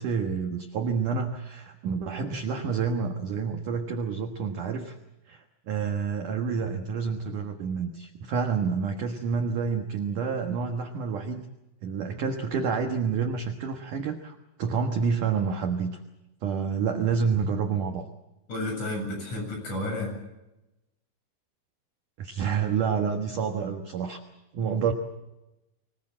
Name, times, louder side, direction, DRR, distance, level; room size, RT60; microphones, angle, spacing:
voice 1, 0.0-5.0 5.3-11.5 11.8-16.0 16.4-18.1 22.2-24.2 24.5-24.9, right 6 dB, 70° right, 4 dB, 2.0 m, -28 dB
voice 2, 18.5-20.1, left 1 dB, 35° left, 1 dB, 9.3 m, -31 dB
25.5 x 20.0 x 7.5 m, 0.95 s
omnidirectional pair, 5.8 m